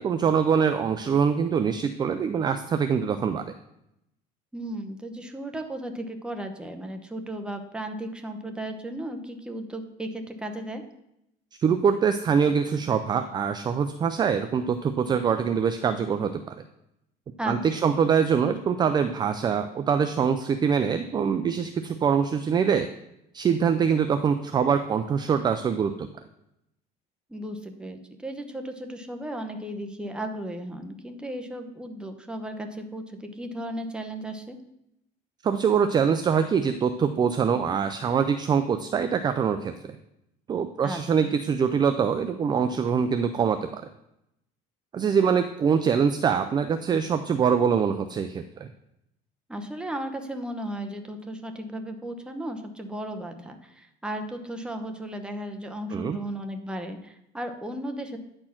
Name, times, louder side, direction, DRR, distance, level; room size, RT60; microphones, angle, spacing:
voice 1, 0.0-3.5 11.6-16.4 17.4-22.9 23.3-25.9 35.4-39.7 40.5-43.8 44.9-48.7 55.9-56.2, right 6 dB, 25° right, 9 dB, 0.4 m, -24 dB
voice 2, 4.5-10.8 17.4-17.8 27.3-34.6 40.8-41.3 49.5-58.2, right 1 dB, 5° right, 5 dB, 0.9 m, -35 dB
9.9 x 4.4 x 5.8 m, 0.81 s
cardioid pair, 140°, 17 cm